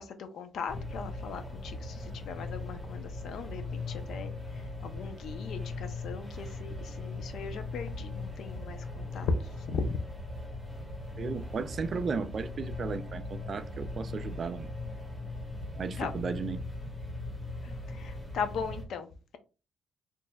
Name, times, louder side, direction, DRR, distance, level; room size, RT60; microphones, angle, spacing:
voice 1, 0.0-9.3 9.6-10.0 16.0-16.1 17.6-19.4, left 5 dB, 70° left, 0.6 m, -38 dB
sound 1, 0.7-18.8, left 2 dB, 5° left, 1.5 m, -39 dB
voice 2, 11.2-14.7 15.7-16.6, right 5 dB, 50° right, 0.4 m, -35 dB
4.3 x 3.1 x 2.3 m
cardioid pair, 90°, 0 cm